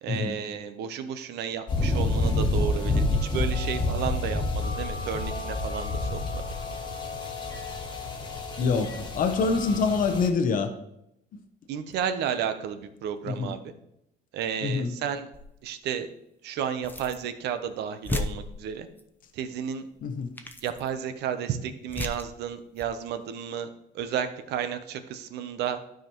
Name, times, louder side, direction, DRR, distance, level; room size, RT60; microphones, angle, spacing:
voice 1, 0.0-3.1 3.3-6.4 11.7-13.6 14.3-15.3 15.6-16.1 16.4-18.9 19.3-19.9 20.6-23.7 23.9-25.8, right 8 dB, 75° right, 9 dB, 0.8 m, -32 dB
sound 1, 1.7-10.3, left 2 dB, 25° left, 1.4 m, -29 dB
voice 2, 8.6-10.7 13.2-13.5 14.6-15.0 20.0-20.3, left 4 dB, 55° left, 7 dB, 0.8 m, -26 dB
sound 2, 15.3-15.7 16.8-17.3 17.6-17.7 18.0-19.0 19.9-20.0 20.4-20.9 21.9-22.3 22.7-22.9, left 2 dB, 10° left, 0.8 m, -35 dB
12.5 x 5.0 x 3.0 m, 0.81 s
cardioid pair, 110°, 17 cm